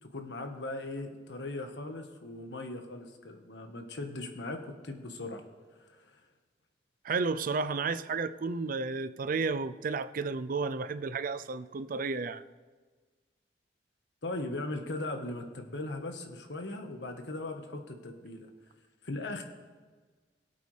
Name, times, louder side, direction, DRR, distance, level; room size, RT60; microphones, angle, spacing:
voice 1, 0.0-5.4 5.9-6.2 14.2-18.5 19.0-19.4, left 2 dB, 85° left, 5 dB, 1.3 m, -39 dB
voice 2, 7.0-12.4, right 4 dB, 50° right, 13 dB, 0.5 m, -32 dB
22.0 x 8.4 x 3.3 m, 1.4 s
head